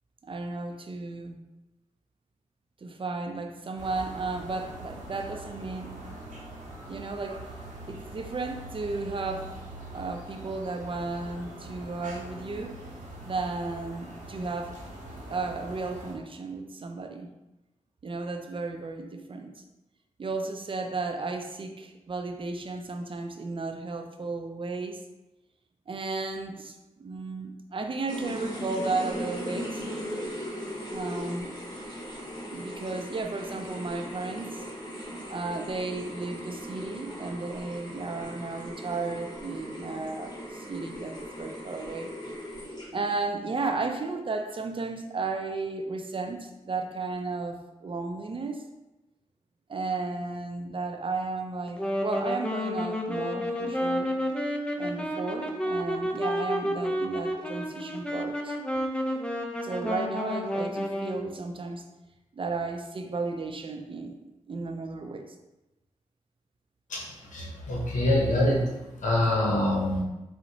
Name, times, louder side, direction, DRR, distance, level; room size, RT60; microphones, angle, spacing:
voice 1, 0.2-1.4 2.8-6.0 6.9-7.5 7.9-9.5 9.9-12.8 13.2-14.8 15.3-17.3 18.0-19.6 20.2-25.0 25.9-29.8 30.9-31.6 32.5-34.7 35.3-42.1 42.9-48.6 49.7-54.1 54.8-58.6 59.6-61.8 62.3-65.3, right 3 dB, 40° right, 5 dB, 0.5 m, -34 dB
sound 1, 3.8-16.1, right 1 dB, 85° right, 0.8 m, -43 dB
sound 2, 28.1-43.2, equal, 35° left, 1.1 m, -38 dB
Wind instrument woodwind instrument, 51.7-61.4, equal, 10° left, 0.5 m, -30 dB
voice 2, 66.9-68.7 69.0-70.0, left 1 dB, 80° left, -3 dB, 0.7 m, -25 dB
4.0 x 2.1 x 2.7 m, 1.0 s
cardioid pair, 40°, 13 cm